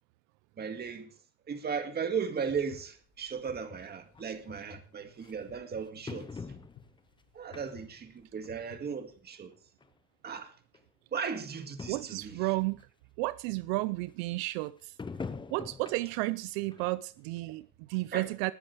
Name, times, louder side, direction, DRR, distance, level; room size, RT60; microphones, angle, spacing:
voice 1, 0.6-1.1 1.5-6.4 7.3-9.5 10.2-10.5 11.1-12.4 18.1-18.3, right 6 dB, 30° right, 2.0 m, -36 dB
sound 1, 2.4-9.2, left 7 dB, 65° left, 7.8 m, -55 dB
sound 2, 4.1-4.2 5.2-5.3 6.1-7.0 7.5-8.0 8.4-8.6 9.5-9.6 9.8-9.9 10.7-10.8 11.1-11.2 11.5-11.6 11.8-12.2 12.8-12.9 15.0-16.3 16.7-16.9 17.4-17.5, left 4 dB, 15° left, 0.8 m, -42 dB
voice 2, 11.9-12.9 13.2-14.9 15.5-18.5, right 20 dB, 80° right, 0.6 m, -32 dB
19.5 x 10.0 x 3.3 m
cardioid pair, 130°, 33 cm